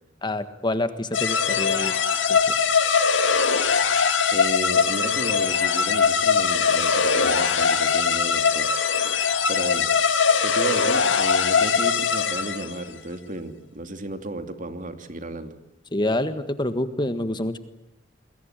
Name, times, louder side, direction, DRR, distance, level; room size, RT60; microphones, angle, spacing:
voice 1, 0.2-2.0 2.3-2.5 15.9-17.6, left 1 dB, 25° left, 10 dB, 1.6 m, -27 dB
sound 1, 1.1-12.8, left 6 dB, 85° left, 2.1 m, -21 dB
voice 2, 4.3-8.9 9.5-9.9 10.4-15.5, right 1 dB, 45° right, 7 dB, 2.7 m, -33 dB
29.0 x 22.0 x 9.1 m, 0.82 s
head